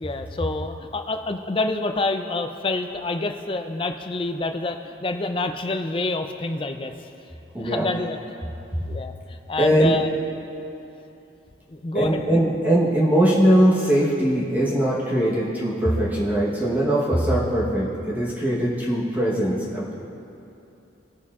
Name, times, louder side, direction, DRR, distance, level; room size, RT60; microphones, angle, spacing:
voice 1, 0.0-6.9 7.6-8.4 8.9-10.1 11.7-12.4, left 2 dB, 30° left, 6 dB, 0.4 m, -27 dB
voice 2, 7.5-7.9 9.6-10.0 11.9-19.9, right 1 dB, 10° right, -6 dB, 1.0 m, -21 dB
19.0 x 6.8 x 2.4 m, 2.8 s
head